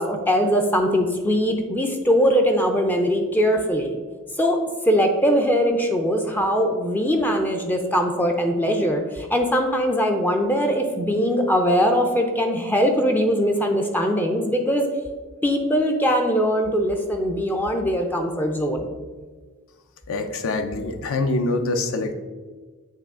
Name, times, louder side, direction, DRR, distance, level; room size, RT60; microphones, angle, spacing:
voice 1, 0.0-4.0 4.4-4.6 4.9-14.9 15.4-18.9, equal, 10° left, 3 dB, 0.4 m, -21 dB
voice 2, 20.1-22.1, left 2 dB, 65° left, 8 dB, 0.5 m, -25 dB
8.2 x 3.2 x 3.6 m, 1.4 s
head